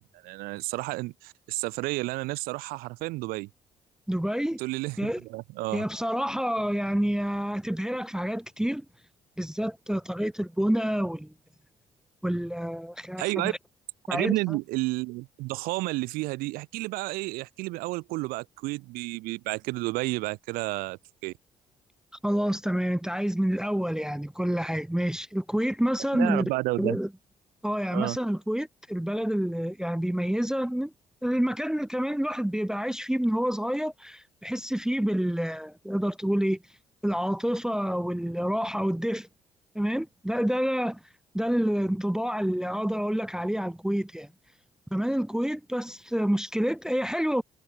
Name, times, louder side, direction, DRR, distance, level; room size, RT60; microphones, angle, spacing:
voice 1, 0.0-3.5 4.6-5.8 13.2-13.5 14.1-21.3 26.1-27.0 27.9-28.2, right 22 dB, 70° right, 0.6 m, -31 dB
voice 2, 4.1-4.6 5.0-5.2 5.7-8.8 9.4-11.3 12.2-13.6 14.1-14.6 22.2-26.4 26.8-27.1 27.6-30.9 31.2-36.6 37.0-39.3 39.7-41.0 41.3-44.3 44.9-47.4, equal, 5° right, 0.4 m, -28 dB
hypercardioid pair, 45°, 16 cm